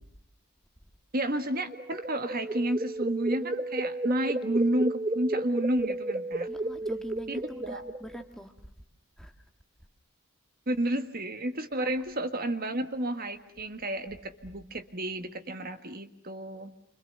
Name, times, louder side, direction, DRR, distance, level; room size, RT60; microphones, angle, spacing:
voice 1, 1.1-6.5 7.3-7.8 10.7-16.7, right 1 dB, 40° right, 8 dB, 1.6 m, -31 dB
sound 1, 1.5-8.2, right 2 dB, 25° right, 1.2 m, -33 dB
voice 2, 6.5-8.5 9.2-9.3 11.8-11.9, equal, ahead, 5 dB, 1.8 m, -43 dB
29.0 x 25.5 x 6.8 m, 0.74 s
head